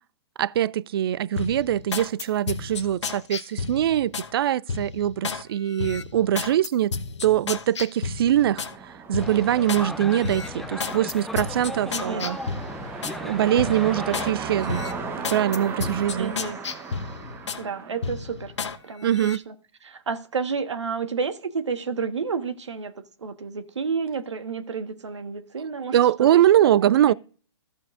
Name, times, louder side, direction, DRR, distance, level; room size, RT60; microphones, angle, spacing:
voice 1, 0.4-6.9 7.2-8.6 9.1-12.4 13.2-14.9 15.3-16.3 19.0-19.4 25.9-27.1, right 11 dB, 55° right, 0.4 m, -22 dB
sound 1, 1.4-4.3 4.7-5.4 5.8-8.8 9.1-9.9 10.2-13.2 13.6-14.3 14.7-17.6 18.0-18.8 19.1-19.4, left 5 dB, 75° left, 1.0 m, -32 dB
sound 2, 8.4-18.7, right 5 dB, 15° right, 1.0 m, -37 dB
sound 3, 9.2-14.3, left 1 dB, ahead, 0.5 m, -36 dB
voice 2, 11.9-12.3 16.2-16.6 17.6-18.5 18.8-19.5 19.8-22.9 23.2-26.0 26.3-27.1, right 5 dB, 75° right, 1.4 m, -31 dB
14.5 x 8.2 x 2.5 m
hypercardioid pair, 130°, 15 cm